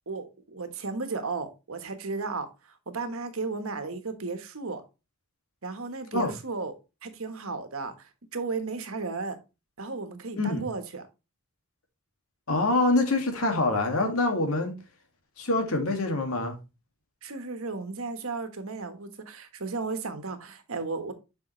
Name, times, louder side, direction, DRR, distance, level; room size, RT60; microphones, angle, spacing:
voice 1, 0.1-4.8 5.6-6.7 7.0-9.4 9.8-11.0 17.2-21.1, right 4 dB, 75° right, 1.3 m, -34 dB
voice 2, 12.5-14.7 15.4-16.6, left 2 dB, 80° left, 2.1 m, -25 dB
7.5 x 5.6 x 3.1 m
head